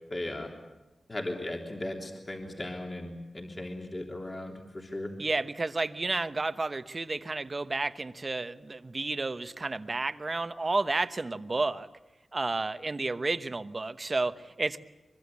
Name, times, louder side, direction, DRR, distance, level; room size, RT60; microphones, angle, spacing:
voice 1, 0.1-0.5 1.1-5.1, left 1 dB, 30° left, 1 dB, 3.5 m, -37 dB
voice 2, 5.2-11.9 12.3-14.8, right 3 dB, 35° right, 11 dB, 1.1 m, -31 dB
24.0 x 23.5 x 8.6 m, 1.1 s
wide cardioid pair, 105°, 0 cm